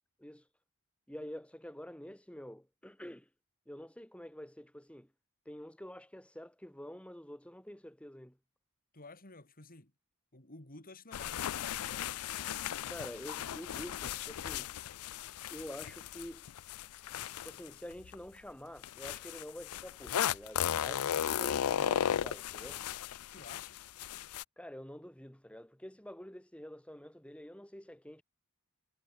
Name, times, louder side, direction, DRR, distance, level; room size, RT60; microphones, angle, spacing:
voice 1, 1.1-3.3 3.7-5.1 5.5-8.4 12.9-14.7 15.5-16.5 17.4-22.8 24.6-28.2, equal, 5° left, 2.7 m, -48 dB
voice 2, 8.9-9.9 10.3-11.5 11.8-12.3 23.3-23.8, left 3 dB, 40° left, 5.0 m, -52 dB
sound 1, 11.1-18.2 18.8-24.4, left 9 dB, 70° left, 0.4 m, -36 dB
head